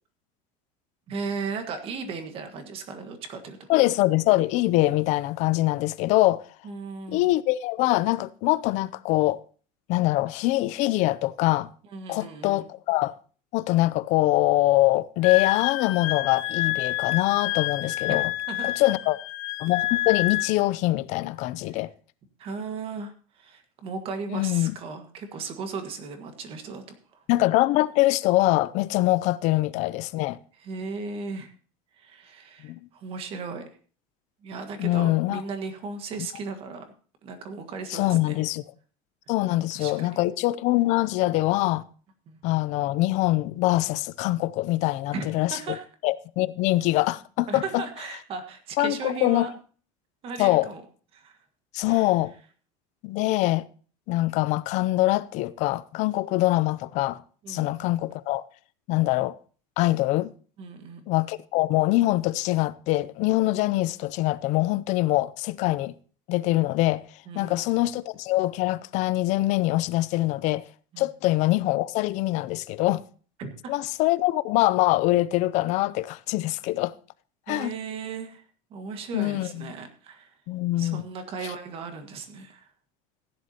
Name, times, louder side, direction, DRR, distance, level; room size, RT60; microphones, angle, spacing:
voice 1, 1.1-3.6 6.6-7.3 11.9-12.7 18.1-18.2 18.5-18.7 21.7-21.8 22.4-26.8 27.1-27.2 29.0-29.1 30.6-31.5 31.9-33.7 34.4-36.9 37.2-38.5 39.7-40.1 42.3-42.4 45.1-45.2 45.5-45.8 47.5-49.5 50.2-50.8 51.1-51.4 51.9-52.1 57.4-57.7 60.6-61.1 67.3-67.7 70.9-71.1 73.4-73.7 77.5-80.4 80.8-82.7, right 4 dB, 35° right, 1.6 m, -36 dB
voice 2, 3.7-6.4 7.1-9.4 9.9-11.7 12.1-13.1 13.5-18.3 18.6-19.2 19.6-21.9 24.3-24.8 27.3-30.4 32.6-32.8 34.8-35.4 37.9-38.6 39.3-41.8 42.4-45.6 46.0-47.8 48.8-49.5 50.4-50.7 51.7-52.3 53.0-53.6 54.1-57.2 57.5-58.4 58.9-59.4 59.8-60.3 61.1-65.9 66.3-67.0 67.3-70.6 71.0-73.0 73.7-76.9 77.5-77.7 79.1-79.7 80.5-81.0, left 18 dB, 45° left, 0.5 m, -24 dB
Wind instrument woodwind instrument, 15.2-20.5, left 17 dB, 60° left, 1.2 m, -28 dB
15.5 x 10.5 x 2.8 m
cardioid pair, 170°, 17 cm